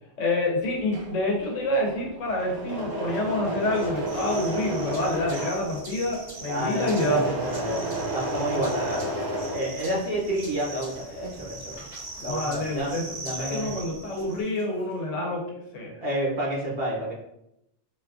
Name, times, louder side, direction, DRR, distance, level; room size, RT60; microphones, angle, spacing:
voice 1, 0.2-7.4 12.2-13.0 13.3-15.4 15.7-15.9, left 1 dB, 85° left, 0 dB, 1.1 m, -27 dB
Engine / Mechanisms, 0.7-10.3 10.6-13.0 13.2-13.9, right 1 dB, 25° right, 0.6 m, -33 dB
sound 1, 3.7-14.6, right 2 dB, 85° right, 1.4 m, -42 dB
voice 2, 6.5-7.8 8.1-9.1 9.5-11.7 12.2-13.7 16.0-17.1, right 1 dB, 55° right, -5 dB, 0.9 m, -30 dB
3.9 x 2.3 x 2.4 m, 0.81 s
omnidirectional pair, 1.2 m